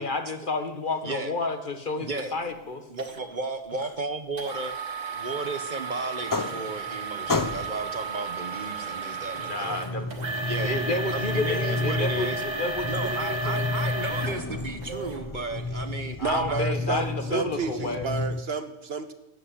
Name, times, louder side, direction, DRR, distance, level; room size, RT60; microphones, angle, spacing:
voice 1, 0.0-2.8 9.4-10.1 10.6-13.6 16.2-18.1, left 2 dB, 45° left, 8 dB, 1.5 m, -30 dB
voice 2, 2.0-2.4 2.9-10.0 10.4-12.4 12.9-16.2 16.5-16.6, right 3 dB, 40° right, 9 dB, 1.1 m, -34 dB
sound 1, 2.2-2.3 3.0-3.2 4.4-15.2 15.8-15.9 16.5-16.6, right 3 dB, 80° right, 2.2 m, -33 dB
sound 2, 6.0-7.0 7.3-7.9 9.1-18.4, left 3 dB, 20° left, 0.6 m, -32 dB
voice 3, 16.2-19.1, right 5 dB, 60° right, 11 dB, 1.1 m, -31 dB
14.5 x 8.7 x 9.7 m, 0.95 s
omnidirectional pair, 1.2 m